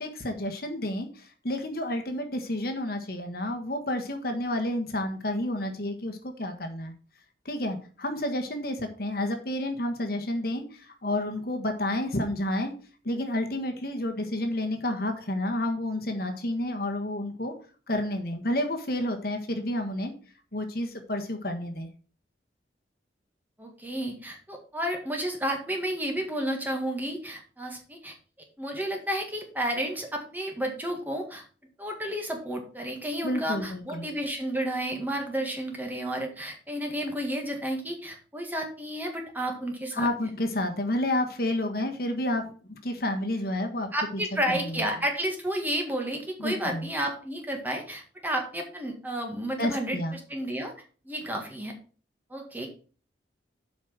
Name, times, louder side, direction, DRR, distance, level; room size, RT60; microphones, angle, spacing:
voice 1, 0.0-6.9 7.4-12.7 13.0-17.5 17.9-20.1 20.5-21.9 33.2-34.1 39.9-44.2 44.5-44.8 46.4-46.9 49.6-50.1, left 1 dB, 55° left, 5 dB, 1.4 m, -30 dB
voice 2, 23.6-28.1 28.6-31.4 31.8-40.1 43.9-50.7 51.1-51.7 52.3-52.7, right 1 dB, 10° right, 2 dB, 1.8 m, -31 dB
8.1 x 5.0 x 6.2 m, 0.38 s
head